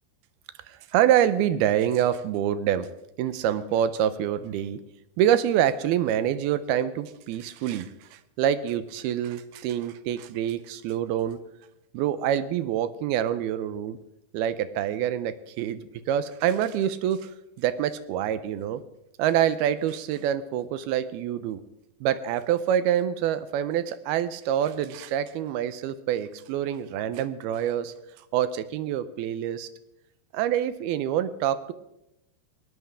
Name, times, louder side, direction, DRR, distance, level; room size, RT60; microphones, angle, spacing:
voice 1, 0.7-2.9 3.2-4.8 5.2-11.4 11.9-14.0 14.3-17.3 17.6-18.8 19.2-21.6 22.0-27.9 28.3-29.7 30.3-31.7, right 10 dB, 75° right, 12 dB, 2.6 m, -26 dB
20.5 x 18.5 x 3.7 m, 0.85 s
omnidirectional pair, 4.9 m